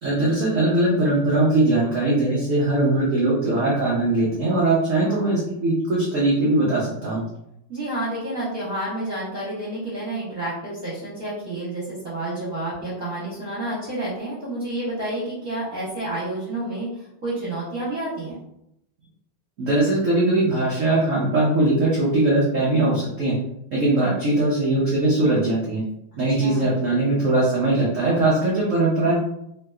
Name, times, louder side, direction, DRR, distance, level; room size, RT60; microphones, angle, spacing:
voice 1, 0.0-7.2 19.6-23.4 23.7-25.8 26.2-29.1, right 2 dB, 85° right, -6 dB, 0.6 m, -20 dB
voice 2, 5.0-5.3 7.7-16.9 17.2-18.4 26.4-26.7, right 1 dB, 50° right, -10 dB, 1.3 m, -29 dB
3.4 x 2.9 x 2.3 m, 0.79 s
omnidirectional pair, 2.3 m